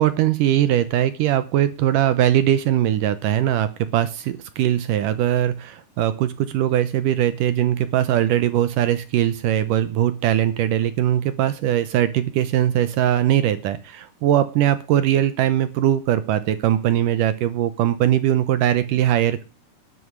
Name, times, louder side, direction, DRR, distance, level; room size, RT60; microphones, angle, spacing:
voice 1, 0.0-19.4, right 11 dB, 75° right, 13 dB, 2.1 m, -20 dB
11.5 x 10.5 x 6.3 m, 0.31 s
omnidirectional pair, 4.6 m